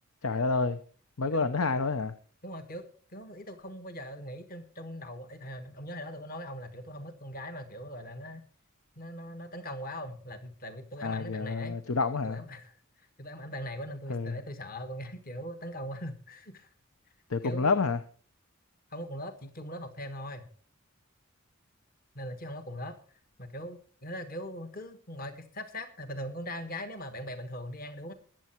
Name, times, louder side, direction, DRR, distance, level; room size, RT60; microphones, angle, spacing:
voice 1, 0.2-0.8 1.2-2.1 11.0-12.4 14.1-14.4 17.3-18.0, left 4 dB, 85° left, 0.9 m, -28 dB
voice 2, 2.4-2.9 3.1-8.4 9.0-11.8 12.2-12.7 13.2-16.7 17.4-17.8 18.9-20.5 22.1-22.9 23.4-28.1, equal, 45° left, 1.4 m, -40 dB
21.0 x 7.7 x 4.5 m
head